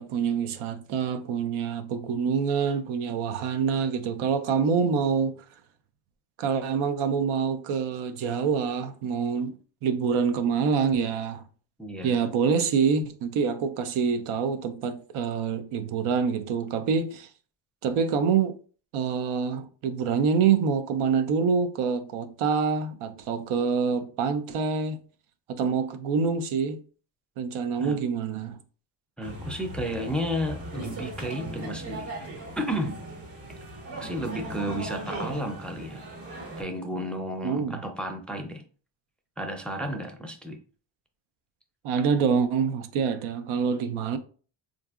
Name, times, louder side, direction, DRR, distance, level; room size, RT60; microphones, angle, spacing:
voice 1, 0.0-5.4 6.4-9.5 9.8-11.4 12.0-17.3 17.8-18.6 18.9-25.0 25.5-26.8 27.4-28.6 37.4-37.8 41.8-44.2, right 6 dB, 90° right, 0.6 m, -26 dB
voice 2, 11.8-12.1 27.8-28.0 29.2-32.3 32.6-33.0 34.0-36.1 36.6-38.6 39.4-40.6, equal, ahead, 0.4 m, -32 dB
sound 1, 29.2-36.6, right 1 dB, 70° right, 1.4 m, -38 dB
3.6 x 2.6 x 2.4 m
cardioid pair, 90°, 48 cm